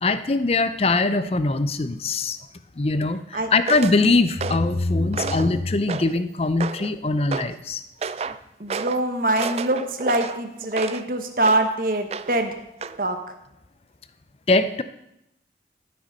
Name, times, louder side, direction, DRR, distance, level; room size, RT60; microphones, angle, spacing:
voice 1, 0.0-2.4 2.8-7.8 8.3-8.4 14.5-14.8, left 3 dB, 35° left, 12 dB, 0.5 m, -22 dB
sound 1, 3.7-4.0 4.4-4.7 5.1-5.5 5.9-6.2 6.6-6.9 7.3-7.5 8.0-8.4 8.7-9.0 9.4-11.1 11.4-11.7 12.1-12.5 12.8-13.0, right 5 dB, 35° right, 0.3 m, -31 dB
voice 2, 8.6-12.6 13.0-13.2, right 1 dB, 50° right, 6 dB, 1.2 m, -24 dB
12.5 x 7.9 x 5.3 m, 0.84 s
head